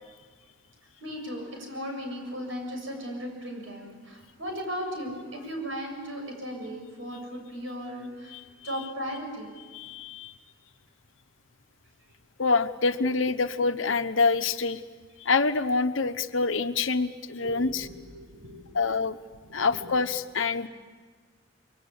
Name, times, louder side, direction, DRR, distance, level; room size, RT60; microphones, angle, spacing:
voice 1, 1.0-8.4 8.6-9.5 17.4-18.8 19.4-19.8, equal, 80° right, 2 dB, 7.5 m, -37 dB
voice 2, 9.7-10.3 12.4-14.8 15.2-17.9 18.7-19.2 19.5-20.7, left 4 dB, 80° left, 9 dB, 1.1 m, -26 dB
24.5 x 24.0 x 8.6 m, 1.5 s
head